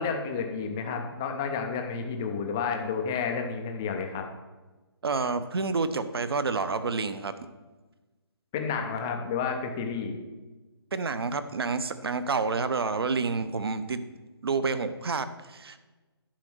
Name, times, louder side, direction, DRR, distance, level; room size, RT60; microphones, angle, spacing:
voice 1, 0.0-4.3 8.5-10.2, left 5 dB, 10° left, 4 dB, 0.3 m, -31 dB
voice 2, 5.0-7.3 10.9-14.0 14.4-15.8, right 4 dB, 65° right, 12 dB, 0.9 m, -29 dB
10.5 x 5.3 x 6.1 m, 1.2 s
hypercardioid pair, 165°, 14 cm